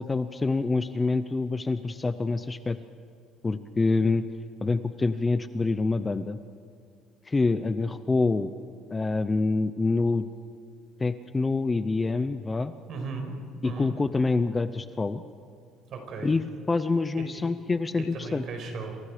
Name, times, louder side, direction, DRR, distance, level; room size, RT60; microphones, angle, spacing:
voice 1, 0.0-2.8 3.4-4.2 4.6-6.4 7.3-8.5 8.9-10.3 11.0-12.7 13.6-15.2 16.2-16.4 16.7-18.4, left 3 dB, 15° left, 11 dB, 0.6 m, -26 dB
voice 2, 12.9-13.3 13.6-14.0 15.9-16.4 18.1-18.9, right 4 dB, 45° right, 3 dB, 5.3 m, -36 dB
28.0 x 27.5 x 5.0 m, 2.5 s
cardioid pair, 165°, 0 cm